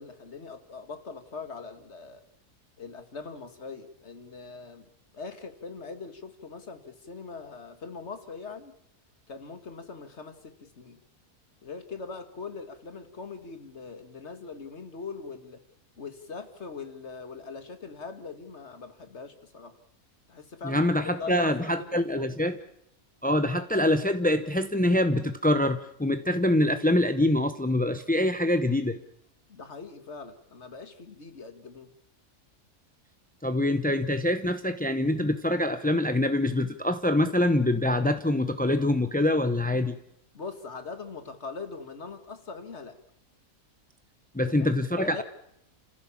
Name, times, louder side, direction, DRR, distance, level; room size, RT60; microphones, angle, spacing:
voice 1, 0.0-2.2 2.8-4.9 5.1-8.7 9.3-11.0 11.6-15.6 16.0-19.7 20.3-20.9 21.2-22.3 29.5-31.9 40.3-43.0 44.4-45.2, left 4 dB, 45° left, 9 dB, 2.1 m, -41 dB
voice 2, 20.6-22.6 23.2-29.0 33.4-40.0 44.3-45.2, left 1 dB, 10° left, 9 dB, 0.4 m, -25 dB
29.0 x 15.5 x 7.3 m, 0.78 s
omnidirectional pair, 1.7 m